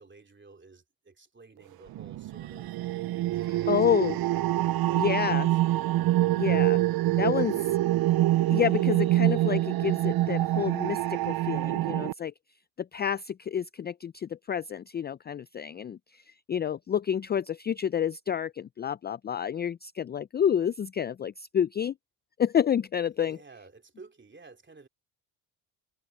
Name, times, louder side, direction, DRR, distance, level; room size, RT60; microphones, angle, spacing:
voice 1, 0.0-2.7 3.3-4.3 4.8-5.9 23.2-24.9, right 3 dB, 20° right, 3.1 m, -52 dB
sound 1, 1.9-12.1, right 15 dB, 50° right, 0.6 m, -26 dB
voice 2, 3.7-4.2 5.0-5.5 6.4-6.8 7.2-7.7 8.5-12.3 12.8-21.9 22.4-23.4, left 9 dB, 25° left, 0.4 m, -29 dB
supercardioid pair, 65°, 49 cm